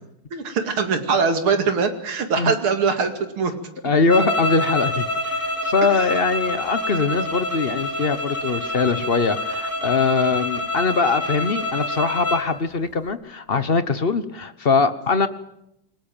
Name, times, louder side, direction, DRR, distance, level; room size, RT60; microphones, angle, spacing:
voice 1, 0.3-3.5 6.0-6.1, right 5 dB, 80° right, 7 dB, 3.2 m, -22 dB
voice 2, 3.8-5.3 5.6-15.3, left 4 dB, 40° left, 13 dB, 0.9 m, -22 dB
sound 1, 4.1-12.5, left 1 dB, 5° left, 3.6 m, -27 dB
26.5 x 20.0 x 9.0 m, 0.83 s
omnidirectional pair, 2.3 m